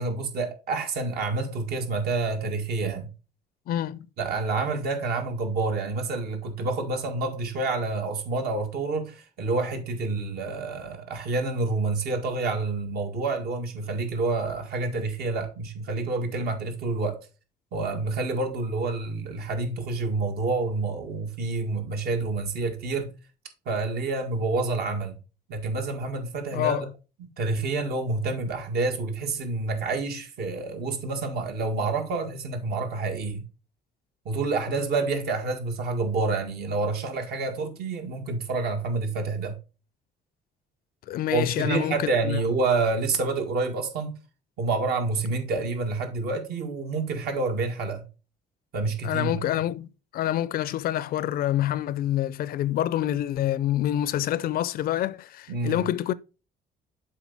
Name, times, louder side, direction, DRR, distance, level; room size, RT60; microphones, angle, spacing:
voice 1, 0.0-3.1 4.2-17.2 17.7-23.1 23.7-25.2 25.5-26.9 27.2-33.4 34.3-39.6 41.3-44.1 44.6-48.0 48.7-49.4 55.5-55.8, right 3 dB, 65° right, 1.9 m, -28 dB
voice 2, 3.7-4.1 26.5-26.8 41.1-42.4 49.0-56.1, left 12 dB, 60° left, 0.5 m, -27 dB
7.4 x 4.9 x 4.1 m
cardioid pair, 110°, 17 cm